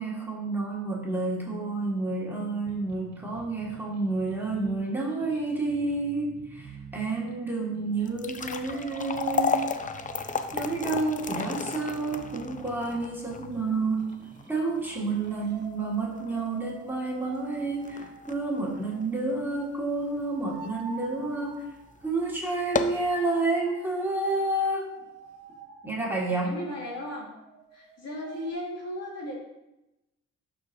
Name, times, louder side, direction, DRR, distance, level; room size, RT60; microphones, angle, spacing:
voice 1, 0.0-9.6 10.5-14.0 14.5-21.7 22.0-25.0 25.8-26.5, right 3 dB, 5° right, -4 dB, 1.9 m, -29 dB
sound 1, 2.7-15.6, right 3 dB, 60° right, 1.3 m, -50 dB
sound 2, 8.0-20.3 20.7-20.8 21.5-21.7 22.0-22.1 22.5-23.1, left 6 dB, 25° left, 0.5 m, -33 dB
sound 3, 8.7-13.3 15.1-28.5, right 5 dB, 90° right, 0.8 m, -48 dB
voice 2, 26.4-27.3 27.7-29.3, left 1 dB, 55° left, -4 dB, 2.6 m, -36 dB
11.5 x 4.6 x 2.7 m, 0.93 s
cardioid pair, 90°, 30 cm